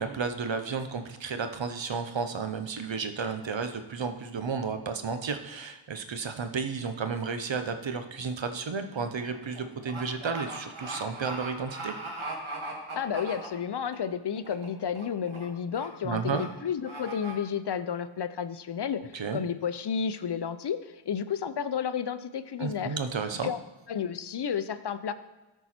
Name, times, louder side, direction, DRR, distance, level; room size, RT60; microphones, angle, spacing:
voice 1, 0.0-11.9 16.0-16.4 19.1-19.4 22.6-23.5, right 5 dB, 70° right, 8 dB, 0.9 m, -32 dB
sound 1, 7.9-8.1 8.5-13.9 14.4-14.7 14.9-15.4 15.7-15.9 16.3-16.4 16.8-17.3, right 2 dB, 85° right, 1.7 m, -39 dB
voice 2, 12.9-23.0 23.4-23.6 23.9-25.1, left 7 dB, 60° left, 13 dB, 0.6 m, -32 dB
13.5 x 4.6 x 4.3 m, 1.1 s
wide cardioid pair, 50°, 47 cm